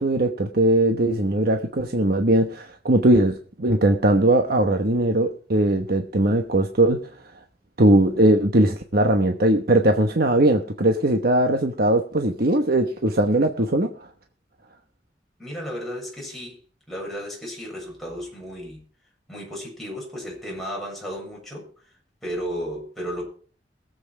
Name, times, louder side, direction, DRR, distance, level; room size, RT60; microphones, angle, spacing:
voice 1, 0.0-7.0 7.8-13.9, right 1 dB, 60° right, 5 dB, 1.1 m, -20 dB
voice 2, 15.4-16.6 16.9-18.8 19.3-21.7 22.2-23.3, equal, ahead, -3 dB, 7.3 m, -33 dB
21.0 x 8.1 x 4.9 m, 0.43 s
head